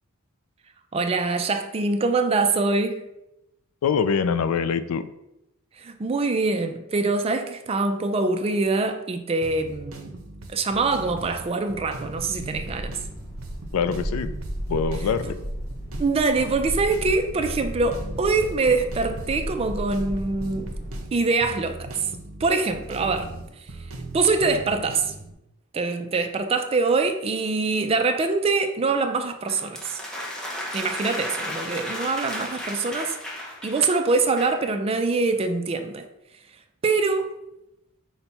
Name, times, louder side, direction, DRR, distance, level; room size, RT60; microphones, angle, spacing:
voice 1, 0.9-3.0 5.8-10.1 10.5-12.9 16.0-20.7 21.1-22.1 22.4-23.3 24.1-25.1 25.7-30.0 30.7-33.2 33.6-36.1 36.8-37.3, right 3 dB, 25° right, 0.4 m, -24 dB
voice 2, 3.8-5.1 13.7-14.3 14.7-15.4, left 6 dB, 85° left, 0.3 m, -24 dB
sound 1, 9.4-25.3, right 2 dB, 70° right, 0.7 m, -39 dB
sound 2, 12.1-21.1, equal, 45° left, 1.1 m, -34 dB
sound 3, 29.5-34.7, left 1 dB, 5° left, 0.7 m, -34 dB
5.8 x 2.2 x 4.0 m
head